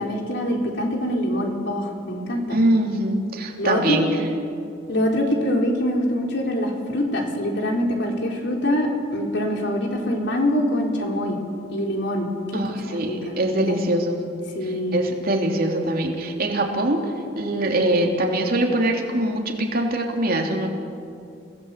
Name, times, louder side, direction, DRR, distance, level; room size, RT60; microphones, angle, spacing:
voice 1, 0.0-2.6 3.6-4.0 4.9-11.4 11.7-12.6 12.9-13.3 13.7-13.8 14.5-15.0, left 1 dB, 65° left, 1 dB, 4.1 m, -24 dB
voice 2, 2.5-4.1 12.5-14.1 14.6-17.0 17.3-20.7, right 1 dB, 50° right, 1 dB, 3.3 m, -23 dB
29.5 x 17.5 x 8.4 m, 2.4 s
head